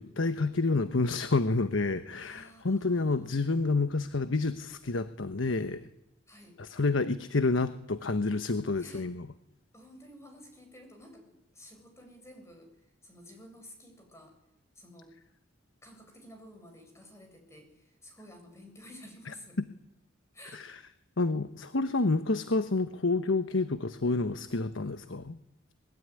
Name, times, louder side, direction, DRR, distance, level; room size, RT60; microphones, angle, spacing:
voice 1, 0.0-5.9 6.6-9.3 20.5-20.8 21.2-25.4, left 3 dB, 80° left, 11 dB, 1.2 m, -29 dB
voice 2, 2.2-3.3 6.3-6.6 8.8-9.0 9.7-12.7 13.0-14.3 14.7-15.1 15.8-19.6 20.3-20.7, equal, 15° left, 3 dB, 7.4 m, -52 dB
25.5 x 21.5 x 9.9 m, 0.85 s
head